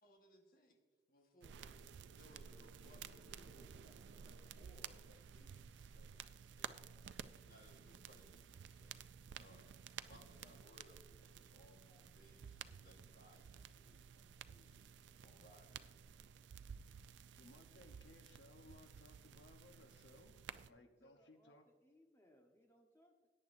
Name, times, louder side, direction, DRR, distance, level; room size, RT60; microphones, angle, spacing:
voice 1, 0.0-0.8 1.1-1.8 2.1-6.9 7.3-9.0 9.4-9.7 10.0-16.0, left 1 dB, 50° left, 3 dB, 1.4 m, -66 dB
sound 1, 1.4-20.7, right 7 dB, 85° right, 0.4 m, -54 dB
voice 2, 17.4-20.4 20.7-21.7, left 2 dB, 80° left, 5 dB, 1.0 m, -63 dB
voice 3, 20.8-23.3, equal, 15° left, 2 dB, 1.1 m, -70 dB
17.0 x 9.3 x 2.6 m, 1.4 s
head